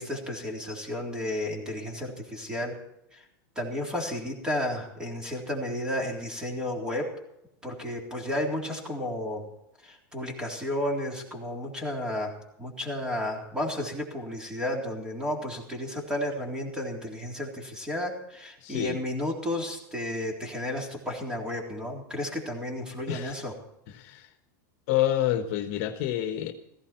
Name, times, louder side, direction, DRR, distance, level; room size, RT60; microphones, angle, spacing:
voice 1, 0.0-2.8 3.1-3.2 3.6-7.1 7.6-9.4 9.8-12.3 12.6-23.5, left 1 dB, 5° right, 1 dB, 3.7 m, -32 dB
voice 2, 18.6-19.0 23.1-23.4 23.9-24.3 24.9-26.5, left 12 dB, 50° left, 7 dB, 1.4 m, -28 dB
16.5 x 15.5 x 4.5 m, 0.81 s
supercardioid pair, 150°, 11 cm